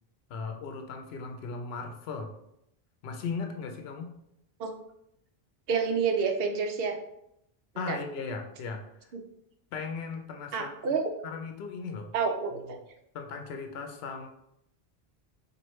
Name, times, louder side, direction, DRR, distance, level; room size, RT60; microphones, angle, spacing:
voice 1, 0.3-2.3 3.0-4.1 7.8-8.8 9.7-10.9 11.2-12.1 12.5-12.8 13.1-14.3, left 4 dB, 80° left, 4 dB, 0.8 m, -37 dB
voice 2, 5.7-7.0 7.7-8.0 10.5-11.1 12.1-12.8, right 5 dB, 70° right, 4 dB, 0.8 m, -28 dB
4.5 x 2.5 x 3.0 m, 0.78 s
omnidirectional pair, 1.0 m